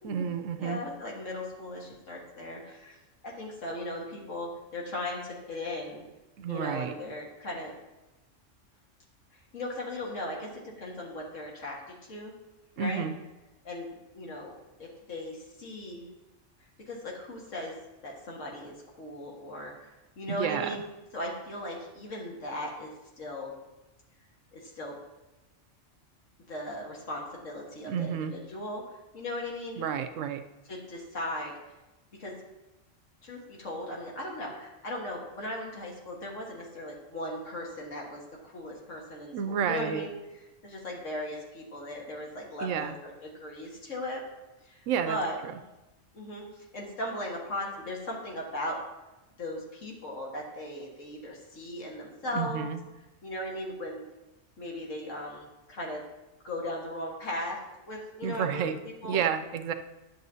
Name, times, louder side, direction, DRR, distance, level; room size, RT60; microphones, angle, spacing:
voice 1, 0.0-0.8 6.4-6.9 12.8-13.1 20.3-20.8 27.9-28.3 29.8-30.4 39.3-40.0 42.6-42.9 44.9-45.2 45.4-45.6 52.3-52.8 58.2-58.7 59.0-59.7, right 8 dB, 80° right, 9 dB, 1.0 m, -30 dB
voice 2, 0.6-3.0 3.2-6.0 6.5-7.7 9.5-12.3 12.8-13.1 13.6-13.9 14.1-14.5 14.8-16.1 16.9-17.7 18.0-20.8 21.1-23.5 24.5-25.0 26.5-28.8 29.1-29.8 30.7-31.5 32.2-32.3 33.2-40.1 40.6-44.2 44.7-44.8 45.1-45.4 46.1-48.8 49.4-52.7 53.2-54.0 54.6-56.0 56.4-57.6 57.9-59.2, left 1 dB, 80° left, -2 dB, 1.9 m, -37 dB
10.5 x 6.6 x 2.7 m, 1.0 s
omnidirectional pair, 1.3 m